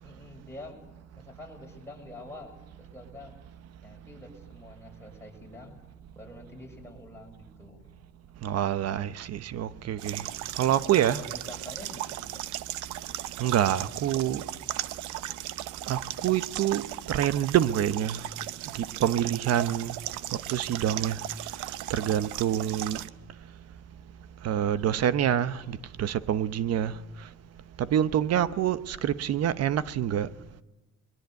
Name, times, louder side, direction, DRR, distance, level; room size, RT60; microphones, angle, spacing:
voice 1, 0.0-3.3 3.8-5.8 6.1-7.9 11.1-12.4 28.9-29.1, left 2 dB, 10° left, 7.0 m, -46 dB
voice 2, 8.4-10.2 10.6-11.2 13.4-14.4 15.9-18.2 19.0-19.9 20.5-21.2 21.9-23.0 24.4-26.9 27.9-30.3, right 10 dB, 60° right, 1.0 m, -26 dB
sound 1, 10.0-23.1, right 14 dB, 90° right, 0.8 m, -37 dB
22.5 x 22.0 x 8.3 m
cardioid pair, 105°, 29 cm